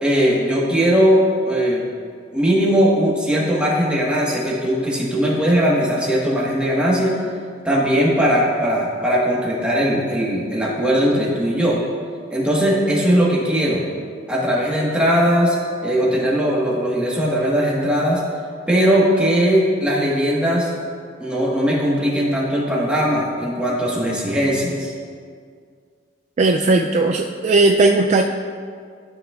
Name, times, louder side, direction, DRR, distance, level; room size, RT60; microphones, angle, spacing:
voice 1, 0.0-1.8 2.3-7.2 7.6-11.8 12.3-13.8 14.3-15.6 15.8-18.2 18.7-20.7 21.2-24.9, equal, 5° right, -5 dB, 1.3 m, -19 dB
voice 2, 26.4-28.2, right 3 dB, 40° right, 3 dB, 0.3 m, -16 dB
12.5 x 5.9 x 2.4 m, 2.1 s
head